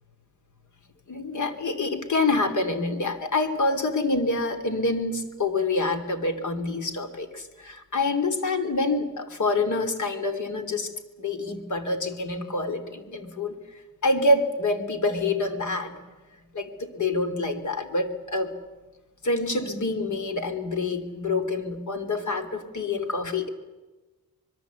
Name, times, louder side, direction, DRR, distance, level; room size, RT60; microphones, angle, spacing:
voice 1, 1.1-10.9 11.2-13.6 14.0-16.0 16.5-18.5 19.2-23.5, left 2 dB, 55° left, 7 dB, 2.9 m, -26 dB
25.0 x 21.5 x 8.2 m, 1.2 s
cardioid pair, 120°, 36 cm